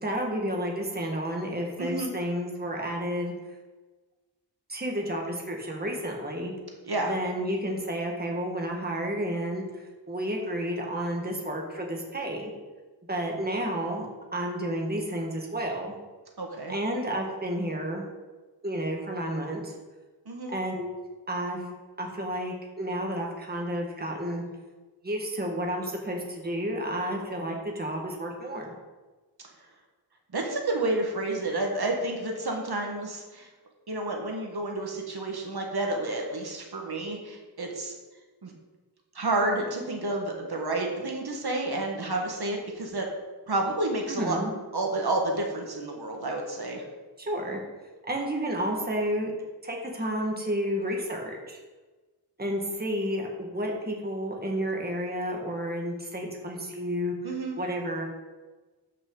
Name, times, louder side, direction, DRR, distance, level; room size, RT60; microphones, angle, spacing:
voice 1, 0.0-3.3 4.7-6.5 7.0-12.5 13.1-14.1 14.3-15.9 16.7-18.1 18.6-19.7 20.5-20.9 21.3-21.6 22.0-24.4 25.0-28.8 44.1-44.5 47.2-47.6 48.1-49.3 49.6-51.6 52.4-57.1 57.6-58.0, equal, 20° right, 0 dB, 1.6 m, -31 dB
voice 2, 1.8-2.1 6.9-7.1 16.4-16.8 20.2-20.5 30.3-33.5 33.9-37.9 38.4-38.5 39.1-43.1 43.5-44.4 44.7-46.8 57.2-57.6, right 2 dB, 60° right, 1 dB, 1.6 m, -30 dB
12.5 x 5.8 x 3.9 m, 1.3 s
wide cardioid pair, 90°, 43 cm